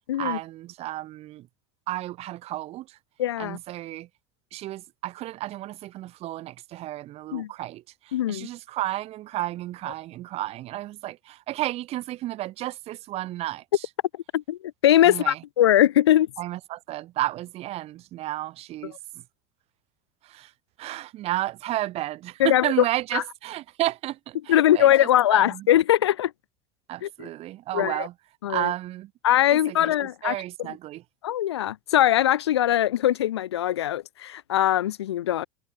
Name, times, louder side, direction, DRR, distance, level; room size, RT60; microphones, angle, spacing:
voice 1, 0.2-1.5 1.9-3.0 3.4-4.1 4.5-13.9 15.0-15.4 16.4-19.2 20.2-20.5 20.8-25.7 26.9-28.1 28.5-29.1 29.5-29.9 30.2-31.0, right 15 dB, 45° right, 2.1 m, -32 dB
voice 2, 3.2-3.6 7.3-7.5 8.1-8.5 14.3-16.3 22.4-22.7 23.1-23.2 24.5-26.3 27.0-27.1 27.7-28.1 28.4-28.7 29.2-30.3 31.2-35.4, left 12 dB, 75° left, 0.9 m, -21 dB
figure-of-eight pair, 75°, 14 cm